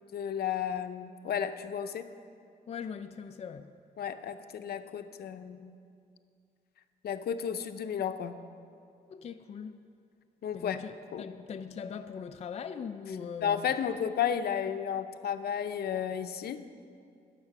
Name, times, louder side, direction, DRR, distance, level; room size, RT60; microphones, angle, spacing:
voice 1, 0.1-2.1 4.0-5.7 7.0-8.4 10.4-10.8 11.1-11.3 13.4-16.6, left 8 dB, 75° left, 0.7 m, -33 dB
voice 2, 2.7-3.7 9.1-9.8 10.5-13.7, left 6 dB, 40° left, 0.4 m, -41 dB
20.5 x 7.5 x 6.0 m
wide cardioid pair, 170°, 16 cm